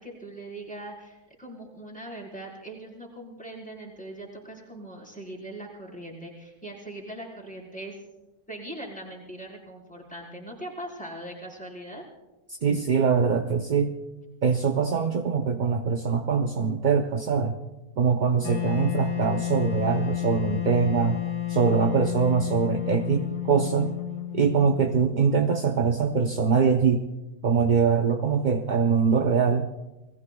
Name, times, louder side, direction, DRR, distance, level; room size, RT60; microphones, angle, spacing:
voice 1, 0.0-8.0 8.5-12.0, right 1 dB, 5° left, -3 dB, 4.5 m, -40 dB
voice 2, 12.5-13.9 14.4-17.6 18.0-21.2 21.5-23.9 24.3-27.0 27.4-29.7, right 5 dB, 55° right, 4 dB, 0.5 m, -23 dB
Wind instrument woodwind instrument, 18.4-25.4, left 13 dB, 85° left, 1.7 m, -31 dB
29.5 x 19.5 x 2.3 m, 1.0 s
omnidirectional pair, 1.6 m